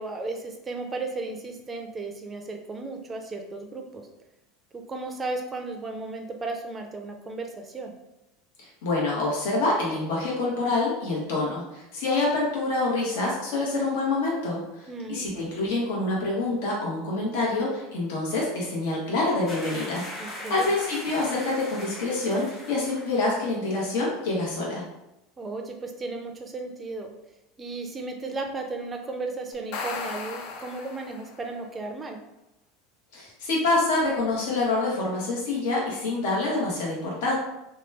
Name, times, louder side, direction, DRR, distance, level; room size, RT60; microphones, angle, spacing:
voice 1, 0.0-4.1 4.7-7.9 14.9-15.4 20.2-20.7 25.4-27.1 27.6-32.2, right 3 dB, 15° right, 3 dB, 0.4 m, -35 dB
voice 2, 8.6-24.8 33.1-37.4, left 2 dB, 80° left, -4 dB, 1.1 m, -26 dB
sound 1, 19.5-23.4 23.6-23.9, left 1 dB, 25° left, 1.0 m, -40 dB
sound 2, 29.5-31.5, left 4 dB, 60° left, 0.4 m, -36 dB
2.9 x 2.2 x 3.3 m, 0.91 s
supercardioid pair, 145°, 0 cm